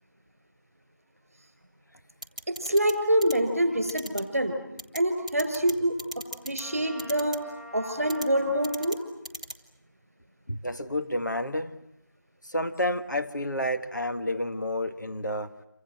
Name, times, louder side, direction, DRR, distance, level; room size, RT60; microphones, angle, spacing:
sound 1, 2.2-2.9 3.2-3.3 3.9-4.2 4.8-5.0 5.3-5.7 6.0-6.6 7.0-7.4 8.1-8.3 8.6-9.0 9.2-9.5, equal, 20° right, 1.5 m, -36 dB
voice 1, 2.5-4.6 4.9-6.0 6.4-7.4 7.7-9.0, right 1 dB, 40° right, 8 dB, 5.7 m, -25 dB
Trumpet, 6.6-9.1, left 2 dB, 40° left, 5.5 m, -46 dB
voice 2, 10.5-11.8 12.4-15.6, left 1 dB, 65° left, 7 dB, 1.8 m, -30 dB
28.5 x 25.0 x 7.8 m, 0.85 s
figure-of-eight pair, 175°, 11 cm